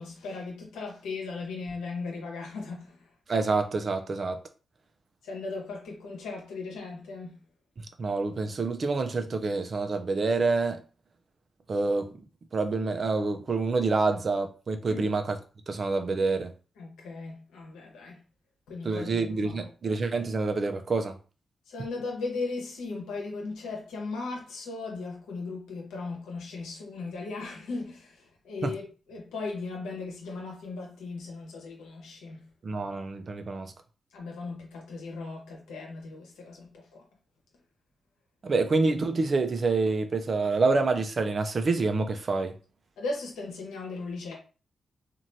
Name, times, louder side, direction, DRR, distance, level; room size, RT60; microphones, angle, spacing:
voice 1, 0.0-3.1 5.2-7.4 14.9-15.1 16.8-18.2 18.7-19.7 21.7-32.5 34.1-37.0 43.0-44.4, left 3 dB, 90° left, 1.0 m, -37 dB
voice 2, 3.3-4.4 8.0-10.8 11.7-12.2 12.5-15.4 15.7-16.5 18.8-21.2 32.6-33.7 38.4-42.6, right 3 dB, 55° right, 0.5 m, -27 dB
3.1 x 2.6 x 2.7 m
supercardioid pair, 45°, 0 cm